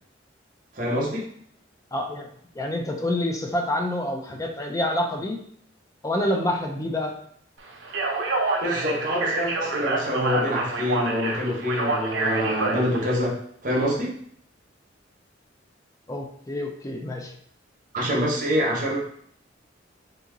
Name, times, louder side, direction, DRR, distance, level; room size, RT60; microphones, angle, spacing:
voice 1, 0.7-1.3 8.6-13.4 13.6-14.1 17.9-19.0, equal, 45° right, -3 dB, 1.0 m, -25 dB
voice 2, 1.9-2.3 2.5-5.4 6.0-7.2 16.1-17.3, left 1 dB, 15° left, 3 dB, 0.4 m, -27 dB
Speech, 7.8-13.2, right 3 dB, 75° right, 0.7 m, -27 dB
2.7 x 2.7 x 3.7 m, 0.64 s
head